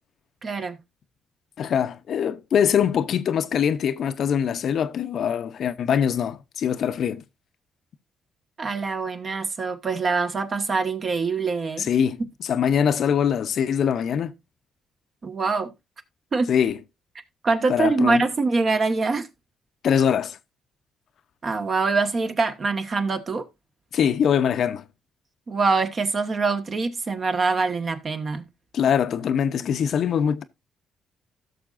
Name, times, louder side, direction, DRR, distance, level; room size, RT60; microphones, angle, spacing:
voice 1, 0.4-0.8 8.6-11.9 15.2-15.7 16.3-16.5 17.4-19.3 21.4-23.5 25.5-28.5, right 4 dB, 40° right, 1.3 m, -24 dB
voice 2, 1.6-7.2 11.8-12.2 12.5-14.3 16.5-16.8 17.7-18.2 19.8-20.4 23.9-24.8 28.7-30.4, left 8 dB, 65° left, 0.6 m, -23 dB
16.0 x 6.4 x 2.5 m
cardioid pair, 90°, 0 cm